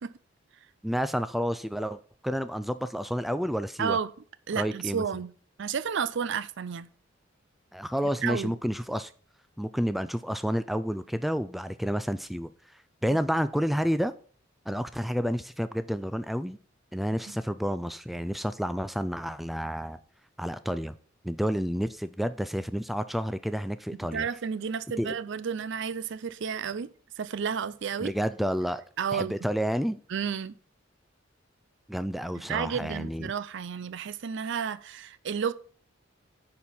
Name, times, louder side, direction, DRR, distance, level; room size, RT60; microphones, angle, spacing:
voice 1, 0.8-4.0 4.5-5.0 7.7-9.1 9.6-12.5 13.0-14.1 14.7-16.6 16.9-20.0 20.4-20.9 21.2-24.3 25.0-25.2 28.0-28.8 29.1-30.0 31.9-33.3, equal, ahead, 0.3 m, -30 dB
voice 2, 3.8-4.1 4.5-5.3 5.6-6.9 8.2-8.5 24.1-26.9 27.2-28.1 29.0-29.3 30.1-30.5 32.5-35.5, right 6 dB, 65° right, 0.5 m, -31 dB
9.4 x 4.4 x 5.5 m
head